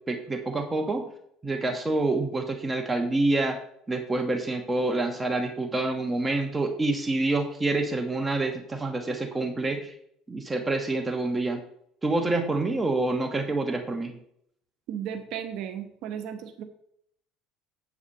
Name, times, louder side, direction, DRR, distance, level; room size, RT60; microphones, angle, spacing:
voice 1, 0.1-1.0 1.4-3.6 3.9-9.9 10.3-11.6 12.0-14.1, right 2 dB, 15° right, 4 dB, 1.2 m, -27 dB
voice 2, 14.9-16.6, right 9 dB, 65° right, 6 dB, 1.0 m, -35 dB
8.5 x 4.8 x 6.6 m, 0.69 s
supercardioid pair, 100°, 0 cm